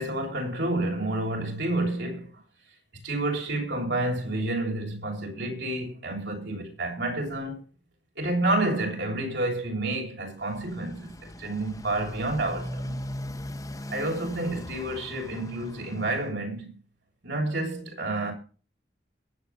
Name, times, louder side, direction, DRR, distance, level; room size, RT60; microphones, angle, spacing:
voice 1, 0.0-2.3 3.0-7.6 8.2-13.0 13.9-16.8 17.2-18.3, right 2 dB, 70° right, 7.1 m, -29 dB
Motorcycle, 10.3-16.3, equal, 20° left, 1.1 m, -39 dB
21.5 x 9.1 x 4.3 m
head